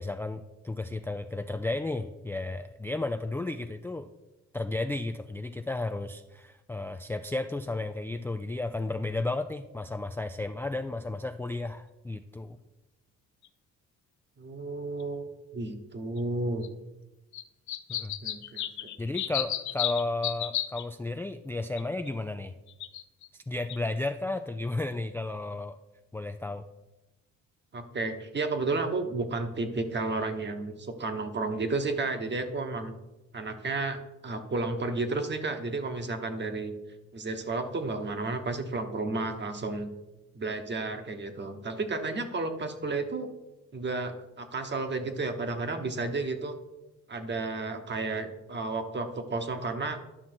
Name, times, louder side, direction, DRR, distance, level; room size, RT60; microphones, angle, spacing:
voice 1, 0.0-4.1 4.5-12.6 17.9-18.2 19.0-22.5 23.3-25.8 26.1-26.6, left 2 dB, 10° left, 8 dB, 0.3 m, -33 dB
sound 1, 13.4-13.5 15.0-15.1 16.2-16.3 16.6-16.7 17.3-20.8 21.8-22.1 22.7-23.3 23.7-23.8, left 12 dB, 70° left, 0.6 m, -33 dB
voice 2, 14.4-15.3 15.5-16.7 18.2-18.9 27.7-32.9 33.3-36.7 37.1-39.9 40.3-43.3 43.7-46.5 47.1-50.0, right 3 dB, 35° right, 6 dB, 1.3 m, -32 dB
11.5 x 5.9 x 4.5 m, 1.0 s
cardioid pair, 90°, 30 cm